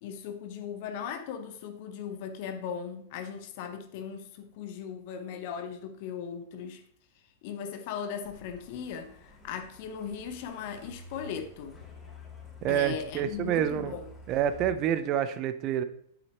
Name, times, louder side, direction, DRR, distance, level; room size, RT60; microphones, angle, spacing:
voice 1, 0.0-6.8 7.4-11.8 12.7-14.0, left 7 dB, 50° left, 0.9 m, -38 dB
Truck, 8.2-14.7, left 2 dB, 10° left, 2.8 m, -50 dB
voice 2, 12.6-14.0 14.3-15.8, right 10 dB, 40° right, 0.7 m, -28 dB
8.6 x 7.6 x 3.1 m
figure-of-eight pair, 100°, 0 cm